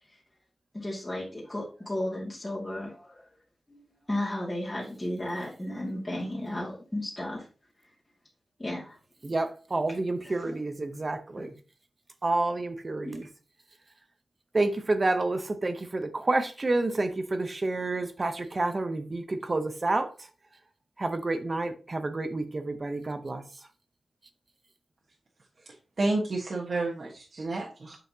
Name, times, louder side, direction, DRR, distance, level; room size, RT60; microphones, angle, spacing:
voice 1, 0.7-3.3 3.7-3.8 4.1-7.4 8.6-9.0 11.4-11.5 13.0-13.2, left 1 dB, 15° left, 2.2 m, -34 dB
voice 2, 9.2-11.5 12.2-13.3 14.5-20.3 21.0-23.7, right 2 dB, 30° right, 0.8 m, -29 dB
voice 3, 26.0-28.0, right 2 dB, 50° right, 1.3 m, -30 dB
8.3 x 5.7 x 2.8 m
wide cardioid pair, 120°, 0 cm